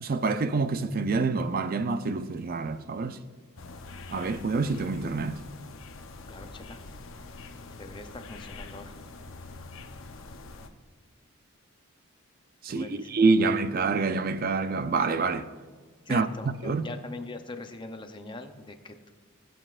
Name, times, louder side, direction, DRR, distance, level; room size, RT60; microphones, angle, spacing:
voice 1, 0.0-3.2 4.1-5.4 12.6-15.5 16.1-16.3 16.6-16.9, right 4 dB, 45° right, 0.4 m, -26 dB
sound 1, 3.6-10.7, left 3 dB, 65° left, 0.7 m, -44 dB
voice 2, 6.3-6.8 7.7-8.9 12.7-13.2 16.1-19.1, left 2 dB, 20° left, 0.6 m, -42 dB
21.0 x 7.8 x 2.5 m
head